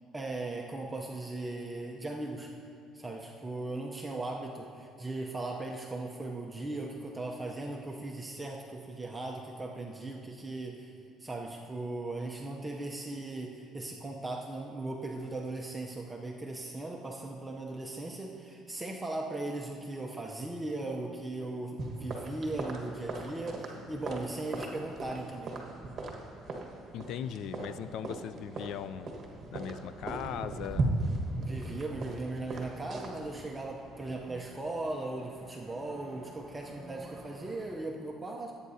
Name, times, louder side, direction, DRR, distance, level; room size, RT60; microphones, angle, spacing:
voice 1, 0.1-2.5 2.9-10.9 11.2-25.6 31.4-38.5, right 2 dB, 15° right, 0 dB, 0.7 m, -38 dB
sound 1, 21.8-37.8, right 2 dB, 35° right, 1.4 m, -39 dB
voice 2, 26.9-29.2 29.5-30.9, left 9 dB, 65° left, 14 dB, 0.3 m, -39 dB
16.5 x 8.6 x 2.8 m, 2.5 s
cardioid pair, 115°, 0 cm